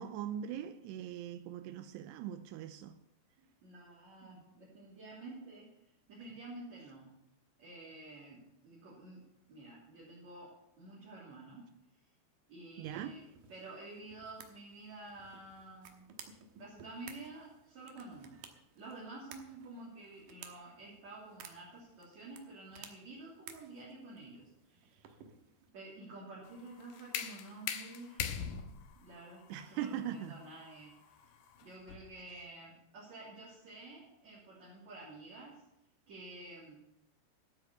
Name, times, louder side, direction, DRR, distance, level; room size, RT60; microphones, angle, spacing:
voice 1, 0.0-3.0 4.2-4.3 12.8-13.2 29.5-30.4, right 10 dB, 85° right, 2.7 m, -41 dB
voice 2, 3.4-5.7 6.1-7.1 7.6-9.2 9.5-11.6 12.5-16.1 16.6-18.4 18.8-24.5 25.7-28.5 29.0-30.9 31.6-35.6 36.1-36.8, right 2 dB, 45° right, 3.9 m, -50 dB
sound 1, 12.8-25.7, right 7 dB, 70° right, 2.3 m, -56 dB
sound 2, 26.5-32.2, left 8 dB, 75° left, 2.1 m, -42 dB
12.5 x 8.6 x 6.8 m
omnidirectional pair, 5.0 m